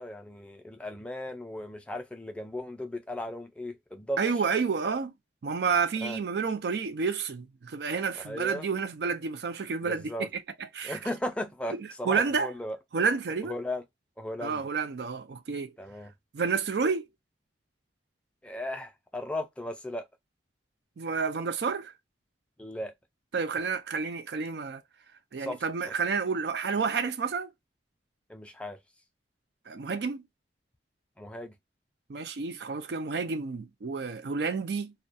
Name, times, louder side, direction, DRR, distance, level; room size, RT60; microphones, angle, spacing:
voice 1, 0.0-4.2 6.0-6.2 8.2-8.7 9.8-10.3 10.8-12.8 13.5-13.8 14.2-14.6 15.8-16.1 18.4-20.1 22.6-22.9 25.4-25.6 28.3-28.8 31.2-31.5, left 1 dB, 5° left, 0.4 m, -36 dB
voice 2, 4.2-5.1 5.4-10.3 10.7-11.0 12.1-12.5 12.9-13.5 14.4-15.7 16.3-17.1 21.0-21.9 23.3-24.8 25.3-27.5 29.7-30.2 32.1-34.9, right 5 dB, 60° right, 0.4 m, -30 dB
2.2 x 2.2 x 2.5 m
head